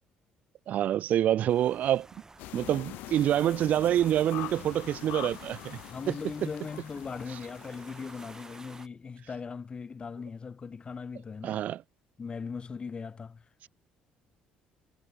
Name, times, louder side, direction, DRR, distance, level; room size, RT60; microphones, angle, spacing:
voice 1, 0.7-2.1 2.5-5.8 6.1-6.2 11.4-11.8, right 11 dB, 60° right, 0.8 m, -26 dB
sound 1, 1.5-8.9, right 3 dB, 20° right, 7.8 m, -52 dB
sound 2, 2.4-8.8, left 19 dB, 80° left, 4.5 m, -44 dB
voice 2, 5.9-11.7 12.2-13.4, left 5 dB, 35° left, 5.6 m, -39 dB
supercardioid pair, 85°, 3 cm